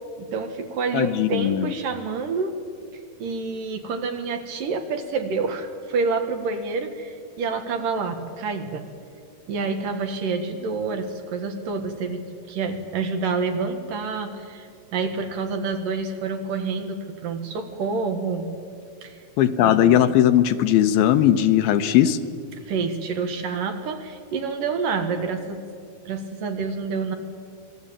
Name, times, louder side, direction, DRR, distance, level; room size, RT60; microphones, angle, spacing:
voice 1, 0.2-2.6 3.2-8.9 9.5-18.5 19.0-19.2 19.6-20.0 22.5-25.6 26.1-27.2, right 4 dB, 65° right, 6 dB, 3.2 m, -28 dB
voice 2, 0.9-1.7 19.4-22.2, left 11 dB, 80° left, 9 dB, 2.7 m, -18 dB
27.0 x 21.0 x 8.7 m, 2.3 s
omnidirectional pair, 4.5 m